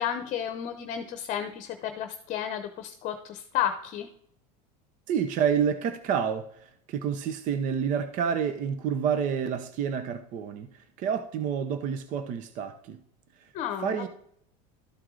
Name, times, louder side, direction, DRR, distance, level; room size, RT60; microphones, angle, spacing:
voice 1, 0.0-4.1 13.5-14.1, left 9 dB, 40° left, 7 dB, 0.8 m, -32 dB
voice 2, 5.1-13.0 13.8-14.1, right 7 dB, 40° right, 10 dB, 0.7 m, -29 dB
12.5 x 4.7 x 3.8 m, 0.68 s
supercardioid pair, 140°, 20 cm